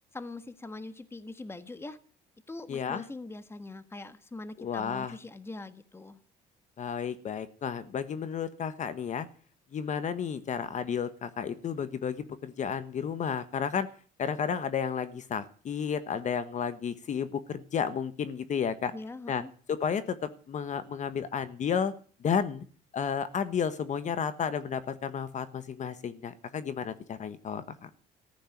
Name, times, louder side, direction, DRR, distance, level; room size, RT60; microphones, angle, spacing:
voice 1, 0.1-2.0 2.5-6.2 18.9-19.5, left 2 dB, 15° left, 12 dB, 1.4 m, -42 dB
voice 2, 2.7-3.0 4.6-5.1 6.8-9.3 9.7-13.9 14.2-18.9 19.3-19.4 19.7-21.9 22.2-22.6 22.9-27.9, left 7 dB, 45° left, 13 dB, 1.3 m, -32 dB
14.5 x 9.1 x 9.3 m, 0.43 s
cardioid pair, 110°, 17 cm